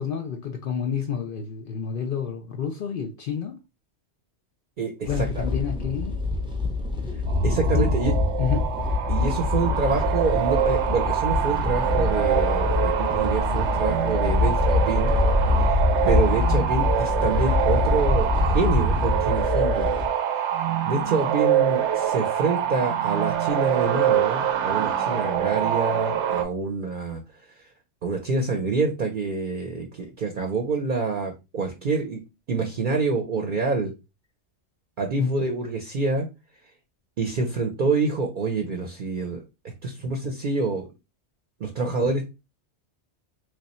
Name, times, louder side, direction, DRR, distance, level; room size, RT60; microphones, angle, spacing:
voice 1, 0.0-3.6 5.1-6.2 7.7-8.7 35.2-35.4, left 6 dB, 60° left, 0.6 m, -29 dB
voice 2, 4.8-5.4 7.4-8.1 9.1-15.1 15.6-15.7 16.0-19.9 20.9-27.2 28.0-32.2 32.5-33.9 35.0-36.3 37.2-39.4 39.8-40.9 41.6-42.3, right 4 dB, 50° right, 0.7 m, -27 dB
sound 1, 5.0-20.1, left 3 dB, 5° right, 0.4 m, -24 dB
sound 2, 7.3-26.4, right 9 dB, 80° right, 0.9 m, -25 dB
3.2 x 2.3 x 4.1 m
omnidirectional pair, 1.2 m